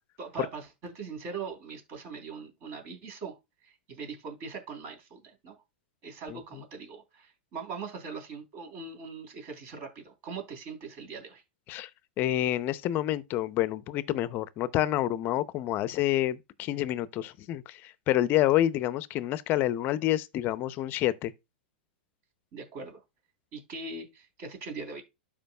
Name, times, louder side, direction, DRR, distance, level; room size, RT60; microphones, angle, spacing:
voice 1, 0.2-3.4 3.6-5.6 6.0-11.4 22.5-23.0 23.5-25.0, right 5 dB, 40° right, 3.4 m, -41 dB
voice 2, 6.3-6.6 11.7-11.9 12.2-21.3, left 13 dB, 35° left, 0.6 m, -28 dB
12.5 x 5.0 x 2.3 m
hypercardioid pair, 125°, 6 cm